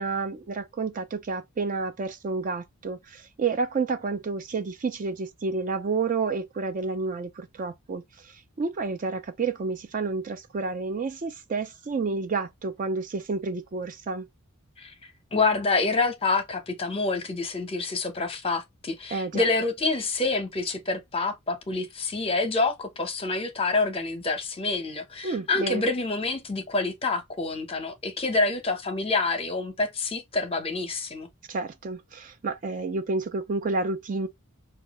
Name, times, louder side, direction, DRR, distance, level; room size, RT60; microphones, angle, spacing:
voice 1, 0.0-14.3 19.1-19.4 25.2-25.8 31.5-34.3, right 4 dB, 40° right, 0.4 m, -30 dB
voice 2, 14.8-31.3, left 3 dB, 25° left, 0.8 m, -27 dB
5.5 x 2.3 x 2.9 m
head